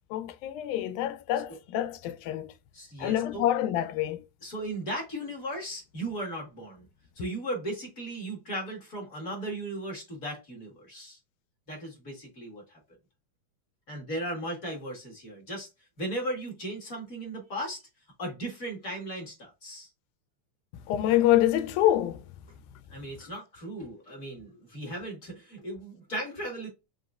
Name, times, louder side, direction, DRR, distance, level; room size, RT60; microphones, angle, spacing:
voice 1, 0.1-2.5 3.0-4.3 20.7-22.4 22.7-22.8 23.2-23.3, left 13 dB, 85° left, 2.0 m, -26 dB
voice 2, 2.7-3.4 4.4-6.9 7.2-11.2 11.7-12.8 13.9-15.7 16.0-17.8 18.2-19.9 22.9-26.7, right 1 dB, 40° left, 1.4 m, -36 dB
4.9 x 3.0 x 2.4 m
omnidirectional pair, 3.4 m